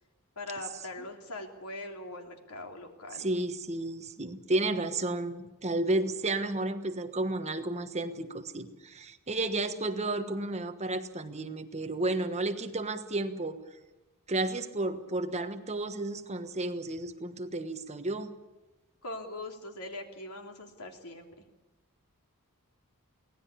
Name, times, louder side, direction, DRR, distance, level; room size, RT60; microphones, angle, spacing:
voice 1, 0.3-3.3 19.0-21.5, left 2 dB, 80° left, 3 dB, 3.3 m, -41 dB
voice 2, 3.2-13.6 14.3-18.3, right 2 dB, 30° right, 8 dB, 1.3 m, -32 dB
24.0 x 18.0 x 8.5 m, 1.1 s
head